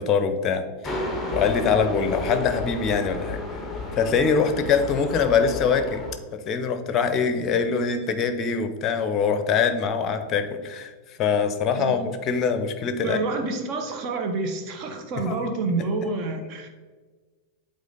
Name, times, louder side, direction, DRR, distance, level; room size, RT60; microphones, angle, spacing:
voice 1, 0.0-3.6 3.9-6.0 6.3-10.9 11.2-13.2 15.2-15.4, left 6 dB, 30° left, 9 dB, 0.7 m, -23 dB
sound 1, 0.8-6.1, left 2 dB, 5° left, 1.1 m, -32 dB
voice 2, 13.0-16.7, right 3 dB, 40° right, 5 dB, 1.0 m, -28 dB
8.2 x 4.0 x 4.0 m, 1.4 s
figure-of-eight pair, 90°, 0 cm